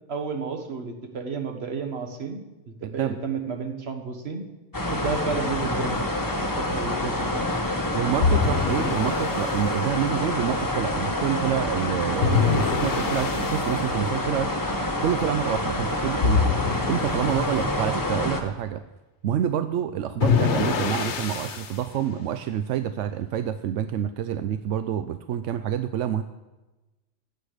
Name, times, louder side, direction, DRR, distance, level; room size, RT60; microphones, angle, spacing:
voice 1, 0.1-4.4 4.9-6.0 6.4-7.5, right 5 dB, 60° right, 5 dB, 1.5 m, -32 dB
voice 2, 2.8-3.2 7.9-14.5 15.0-18.8 19.2-26.2, right 10 dB, 90° right, 10 dB, 0.9 m, -28 dB
sound 1, 4.7-18.4, left 1 dB, 15° left, 1.1 m, -27 dB
sound 2, 8.2-9.6 12.2-13.7 16.2-17.6 20.2-21.8, left 6 dB, 70° left, 1.2 m, -25 dB
15.0 x 9.1 x 5.0 m, 1.1 s
omnidirectional pair, 1.2 m